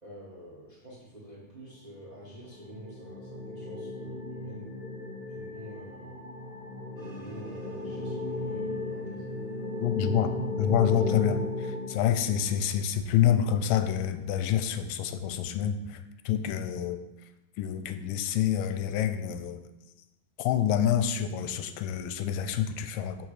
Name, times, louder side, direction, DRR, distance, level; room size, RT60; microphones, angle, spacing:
voice 1, 0.0-4.7 5.3-6.2 7.1-9.3, right 1 dB, 80° right, -5 dB, 0.4 m, -48 dB
sound 1, 2.1-12.8, left 2 dB, 50° left, 3.2 m, -35 dB
sound 2, 6.9-12.2, equal, 40° right, 0.7 m, -52 dB
voice 2, 9.8-16.0 16.3-17.0 17.6-19.6 20.4-23.2, left 9 dB, 85° left, 10 dB, 2.3 m, -27 dB
6.2 x 4.6 x 6.6 m, 0.95 s
omnidirectional pair, 3.9 m